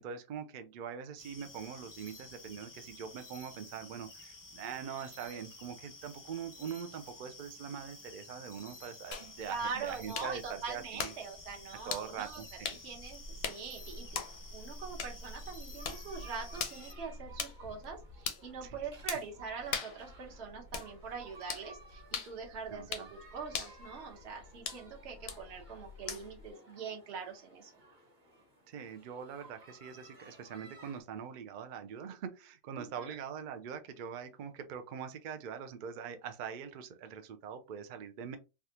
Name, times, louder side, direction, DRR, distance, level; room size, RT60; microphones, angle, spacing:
voice 1, 0.0-11.1 11.8-12.8 18.6-18.9 22.7-23.1 28.7-38.4, right 7 dB, 75° right, 0.4 m, -43 dB
sound 1, 1.2-16.9, left 3 dB, 30° left, 0.4 m, -52 dB
sound 2, 9.1-26.5, left 5 dB, 60° left, 0.7 m, -43 dB
voice 2, 9.5-14.2 14.5-27.7 32.7-33.2, right 5 dB, 50° right, 1.2 m, -43 dB
sound 3, 13.8-31.0, right 2 dB, 35° right, 1.4 m, -58 dB
3.4 x 2.4 x 2.8 m
omnidirectional pair, 1.5 m